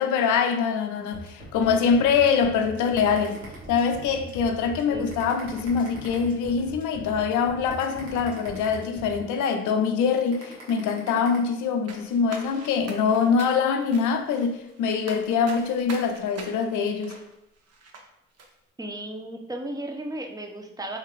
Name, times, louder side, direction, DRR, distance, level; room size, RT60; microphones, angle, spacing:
voice 1, 0.0-3.4 3.7-17.2, left 6 dB, 75° left, 0.5 m, -24 dB
sound 1, 1.1-9.2, right 2 dB, 25° right, 1.2 m, -42 dB
sound 2, 3.0-4.1 4.6-4.7 5.1-6.7 7.2-7.3 7.7-9.3 9.8-9.9 10.3-11.4, right 2 dB, 75° right, 1.1 m, -45 dB
sound 3, 11.9-18.0 18.4-18.5, right 3 dB, 50° right, 0.7 m, -43 dB
voice 2, 18.8-21.0, right 1 dB, 10° right, 0.6 m, -34 dB
3.1 x 2.8 x 2.4 m
hypercardioid pair, 50°, 31 cm